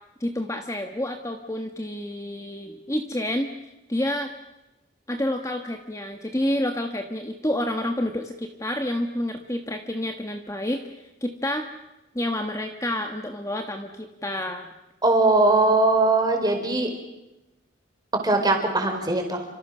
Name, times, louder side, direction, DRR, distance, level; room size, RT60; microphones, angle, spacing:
voice 1, 0.2-4.3 5.1-11.7 12.1-14.7, left 1 dB, 15° left, 5 dB, 1.4 m, -29 dB
voice 2, 15.0-16.9 18.2-19.4, right 2 dB, 20° right, 4 dB, 4.5 m, -20 dB
29.5 x 26.0 x 6.4 m, 0.98 s
head